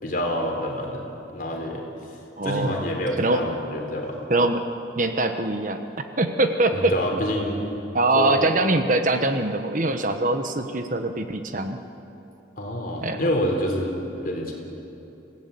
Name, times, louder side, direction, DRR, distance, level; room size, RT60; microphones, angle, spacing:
voice 1, 0.0-1.1 1.3-1.8 2.4-4.2 6.7-7.6 8.1-8.4 12.6-13.9 14.2-14.5, equal, 45° left, 1 dB, 3.9 m, -27 dB
voice 2, 2.4-2.7 3.2-3.4 4.3-4.6 5.0-5.8 6.2-6.9 7.9-11.8 13.0-13.3, right 2 dB, 45° right, 7 dB, 1.1 m, -23 dB
26.5 x 17.0 x 8.4 m, 2.9 s
head